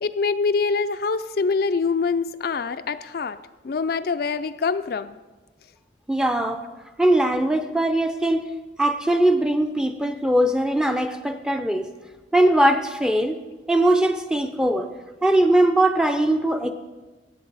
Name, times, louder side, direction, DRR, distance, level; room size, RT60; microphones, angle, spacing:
voice 1, 0.0-3.4 3.6-5.2, left 4 dB, 55° left, 10 dB, 0.4 m, -24 dB
voice 2, 6.1-6.6 7.0-8.5 8.8-11.9 12.3-13.4 13.7-14.9 15.2-16.7, right 1 dB, 5° right, 7 dB, 0.5 m, -20 dB
17.5 x 8.1 x 4.1 m, 1.2 s
head